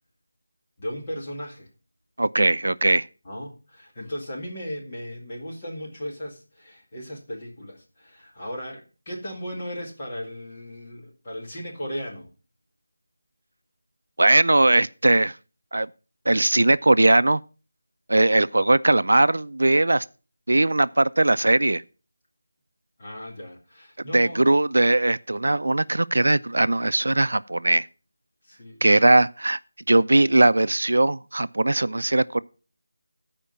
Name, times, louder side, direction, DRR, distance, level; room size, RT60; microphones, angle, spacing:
voice 1, 0.8-1.7 3.2-12.3 23.0-24.5 28.5-28.8, equal, 20° left, 2.1 m, -36 dB
voice 2, 2.2-3.0 14.2-15.3 15.7-15.9 16.3-17.4 18.1-20.0 20.5-21.8 24.1-27.8 28.8-29.6 29.9-32.4, right 2 dB, 85° right, 0.5 m, -19 dB
13.5 x 5.1 x 5.7 m
figure-of-eight pair, 180°, 0 cm